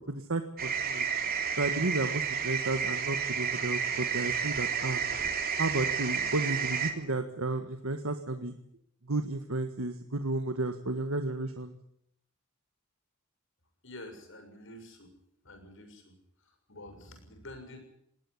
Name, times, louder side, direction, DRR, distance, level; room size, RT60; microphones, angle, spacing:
voice 1, 0.1-1.1 1.6-5.0 5.6-8.5 9.0-11.7, right 2 dB, 85° right, 7 dB, 1.6 m, -32 dB
sound 1, 0.6-6.9, right 7 dB, 45° right, 3.2 m, -31 dB
voice 2, 13.8-15.1 15.4-16.1 16.4-17.8, left 1 dB, 65° left, 6 dB, 6.9 m, -48 dB
20.5 x 18.0 x 9.8 m, 0.72 s
head